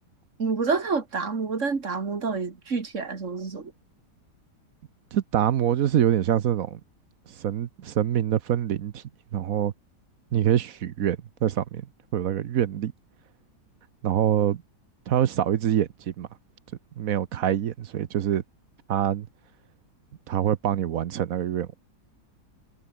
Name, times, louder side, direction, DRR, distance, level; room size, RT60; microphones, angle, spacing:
voice 1, 0.4-3.7, right 4 dB, 45° right, 2.5 m, -28 dB
voice 2, 5.1-6.8 7.4-9.0 9.3-9.7 10.3-11.9 12.1-12.9 14.0-14.6 15.1-16.3 17.0-18.4 18.9-19.3 20.3-21.8, right 10 dB, 60° right, 1.2 m, -25 dB
omnidirectional pair, 1.8 m